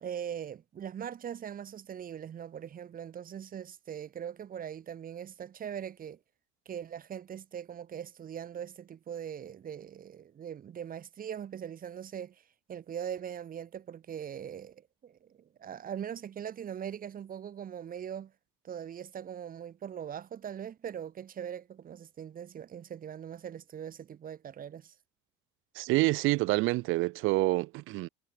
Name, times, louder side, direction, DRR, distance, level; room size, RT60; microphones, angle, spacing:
voice 1, 0.0-6.2 6.6-12.4 12.7-18.3 18.6-24.9, right 9 dB, 40° right, 1.7 m, -41 dB
voice 2, 25.7-28.1, right 21 dB, 70° right, 0.9 m, -27 dB
supercardioid pair, 95°, 21 cm